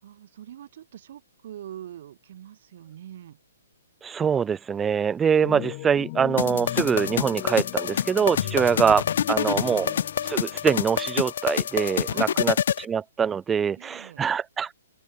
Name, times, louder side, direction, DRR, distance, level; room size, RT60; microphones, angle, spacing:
voice 1, 0.0-3.4 8.4-8.7 12.1-12.4 13.8-14.2, right 11 dB, 40° right, 4.1 m, -44 dB
voice 2, 4.0-9.0 9.3-9.9 10.2-14.7, right 7 dB, 5° right, 0.4 m, -24 dB
sound 1, 5.4-11.1, left 23 dB, 25° left, 2.3 m, -37 dB
sound 2, 6.4-12.8, left 9 dB, 45° left, 1.2 m, -27 dB
open air
hypercardioid pair, 180°, 0 cm